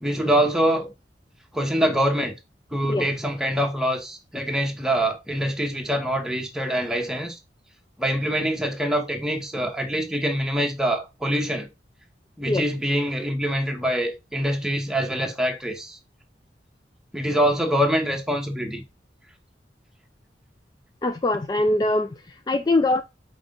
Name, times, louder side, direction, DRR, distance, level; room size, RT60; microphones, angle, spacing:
voice 1, 0.0-0.9 1.5-2.3 2.7-7.4 8.0-11.7 12.4-16.0 17.1-18.8, equal, 5° right, 1.1 m, -24 dB
voice 2, 21.0-23.0, left 2 dB, 25° left, 0.4 m, -23 dB
5.2 x 3.9 x 5.2 m
head